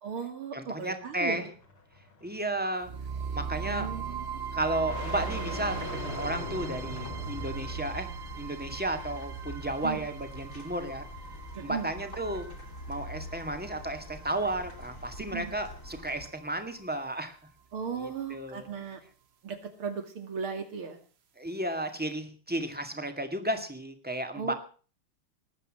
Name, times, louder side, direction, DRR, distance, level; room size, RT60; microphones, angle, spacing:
voice 1, 0.0-1.5 3.6-4.4 9.8-10.1 11.5-12.0 15.3-15.5 17.7-19.0 19.4-21.0 24.3-24.6, right 6 dB, 90° right, 7 dB, 3.4 m, -36 dB
voice 2, 0.5-1.5 2.2-2.9 3.3-3.9 4.5-8.1 8.4-11.0 11.6-12.5 12.9-17.4 18.0-18.7 21.4-24.5, right 1 dB, 5° right, 6 dB, 1.8 m, -33 dB
sound 1, 1.0-8.0, left 3 dB, 70° left, 3.7 m, -42 dB
sound 2, 2.8-16.8, right 6 dB, 50° right, 0.8 m, -41 dB
sound 3, 5.1-16.3, equal, 40° left, 2.8 m, -44 dB
19.5 x 8.5 x 7.5 m, 0.40 s
omnidirectional pair, 2.3 m